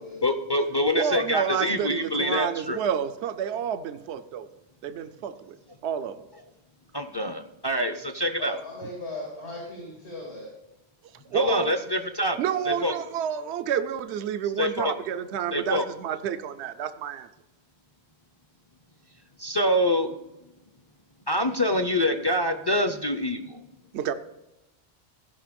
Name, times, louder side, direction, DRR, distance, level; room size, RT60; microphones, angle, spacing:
voice 1, 0.2-2.8 6.9-8.6 11.3-12.4 12.7-12.9 14.6-14.9 15.5-15.8 19.4-20.1 21.3-23.6, left 1 dB, 30° left, 7 dB, 0.5 m, -25 dB
voice 2, 0.9-4.5 4.8-5.6 5.8-6.2 11.3-11.7 12.4-17.3 23.9-24.1, right 8 dB, 80° right, 10 dB, 0.9 m, -29 dB
voice 3, 8.4-10.5, left 2 dB, 90° left, -3 dB, 3.0 m, -38 dB
14.5 x 5.5 x 5.1 m, 0.98 s
omnidirectional pair, 1.1 m